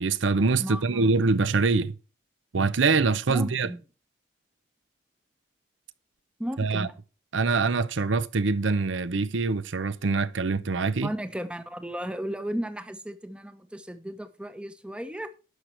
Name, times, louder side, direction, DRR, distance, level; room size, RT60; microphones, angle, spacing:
voice 1, 0.0-1.9 2.5-3.7 6.6-6.9 7.3-11.1, right 4 dB, 90° right, 0.7 m, -24 dB
voice 2, 0.6-1.1 3.3-3.8 6.4-7.0 11.0-15.4, equal, 5° right, 0.7 m, -35 dB
11.0 x 6.5 x 4.4 m
head